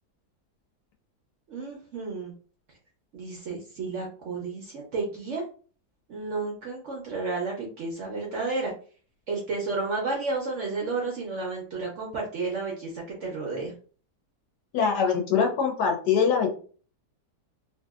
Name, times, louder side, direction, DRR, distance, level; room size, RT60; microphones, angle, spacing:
voice 1, 1.5-2.3 3.1-5.4 6.1-8.7 9.3-13.7, right 3 dB, 60° right, -2 dB, 0.8 m, -32 dB
voice 2, 14.7-16.5, left 6 dB, 80° left, 2 dB, 1.2 m, -23 dB
2.8 x 2.6 x 2.3 m, 0.41 s
omnidirectional pair, 1.8 m